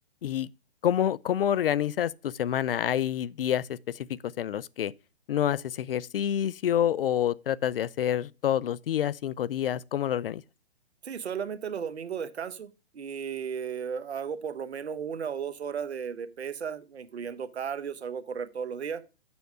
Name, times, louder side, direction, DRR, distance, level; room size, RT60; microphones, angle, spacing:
voice 1, 0.8-4.9 5.3-10.4, left 10 dB, 60° left, 0.4 m, -28 dB
voice 2, 11.0-19.0, right 7 dB, 85° right, 1.0 m, -35 dB
7.0 x 6.4 x 4.7 m
hypercardioid pair, 150°, 32 cm